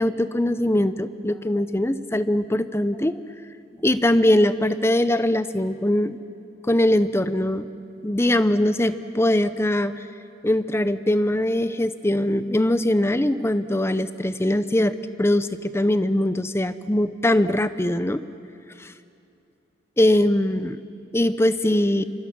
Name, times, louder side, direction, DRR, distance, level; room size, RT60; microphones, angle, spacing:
voice 1, 0.0-3.1 3.8-6.2 6.7-7.7 8.0-10.0 10.4-18.2 18.8-18.9 20.0-20.8 21.1-22.0, left 1 dB, 15° left, 13 dB, 0.7 m, -21 dB
28.0 x 25.0 x 6.2 m, 2.7 s
head